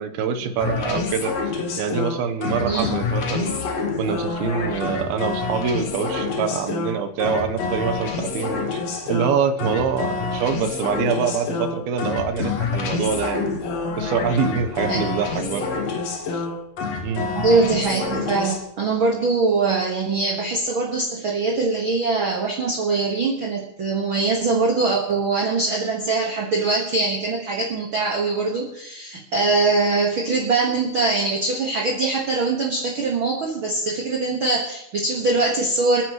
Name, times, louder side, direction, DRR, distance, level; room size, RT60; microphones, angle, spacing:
voice 1, 0.0-3.6 4.0-13.6 14.0-15.7 16.3-16.5 17.0-17.3, right 6 dB, 85° right, 7 dB, 2.9 m, -25 dB
sound 1, 0.6-18.6, left 4 dB, 55° left, 2.3 m, -27 dB
voice 2, 17.4-36.0, right 3 dB, 50° right, -1 dB, 1.7 m, -22 dB
28.5 x 9.9 x 3.1 m, 0.78 s
omnidirectional pair, 4.3 m